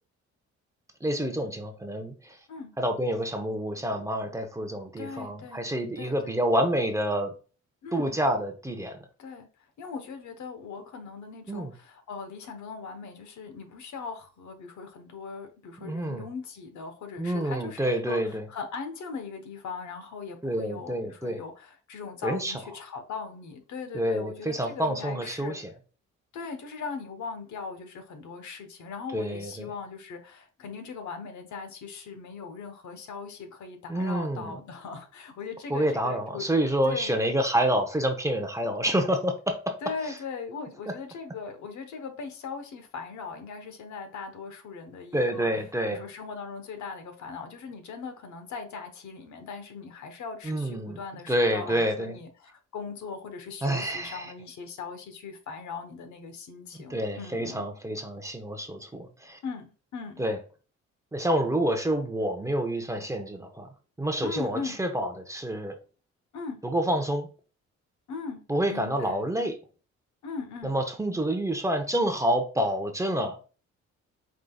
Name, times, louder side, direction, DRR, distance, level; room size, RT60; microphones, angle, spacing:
voice 1, 1.0-2.4 2.8-7.3 7.9-9.0 11.5-11.7 15.8-16.3 17.2-18.5 20.4-21.4 22.2-22.5 23.9-25.7 29.1-29.7 33.9-34.6 35.7-39.8 40.9-41.0 45.1-46.0 50.4-51.0 51.3-52.2 53.6-54.3 56.7-59.4 60.2-60.4 61.1-63.7 64.0-65.7 66.6-67.3 68.5-69.5 70.6-73.4, right 1 dB, 10° right, 5 dB, 0.7 m, -28 dB
voice 2, 5.0-5.7 6.0-6.4 7.8-8.1 9.2-25.6 26.3-36.5 36.8-37.1 39.8-45.5 45.9-57.6 59.4-60.2 64.2-64.8 66.3-66.6 68.1-68.4 68.7-69.2 70.2-70.8, left 5 dB, 70° left, 6 dB, 1.0 m, -39 dB
4.9 x 3.7 x 2.3 m, 0.36 s
cardioid pair, 90°, 30 cm